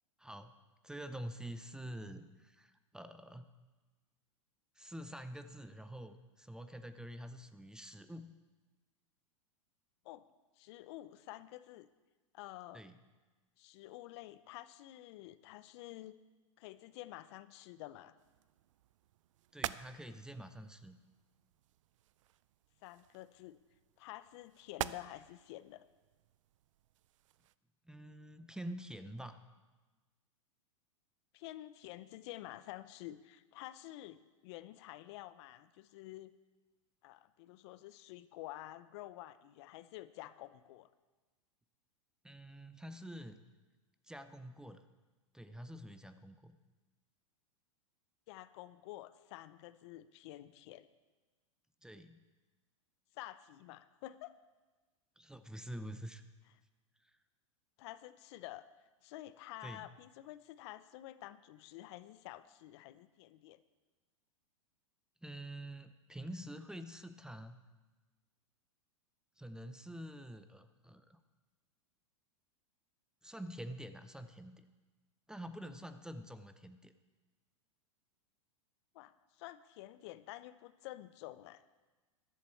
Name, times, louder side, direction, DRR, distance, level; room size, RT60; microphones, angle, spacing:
voice 1, 0.2-0.5 0.8-3.5 4.8-8.3 12.7-13.0 19.5-21.0 27.9-29.4 42.2-43.4 44.0-44.8 45.3-46.6 51.8-52.2 55.2-56.2 57.0-57.2 59.6-59.9 65.2-67.6 69.4-71.2 73.2-74.7 75.3-76.9, right 1 dB, 5° right, 10 dB, 0.6 m, -47 dB
voice 2, 10.6-11.9 12.3-12.8 13.6-16.2 16.6-18.1 22.8-23.6 24.0-25.8 31.3-36.3 37.0-40.9 48.3-50.9 53.1-54.3 57.8-58.6 59.0-63.6 78.9-81.6, left 15 dB, 55° left, 14 dB, 0.7 m, -50 dB
sound 1, 18.2-27.6, right 13 dB, 70° right, 0.5 m, -48 dB
14.0 x 11.5 x 4.5 m, 1.2 s
hypercardioid pair, 110°, 17 cm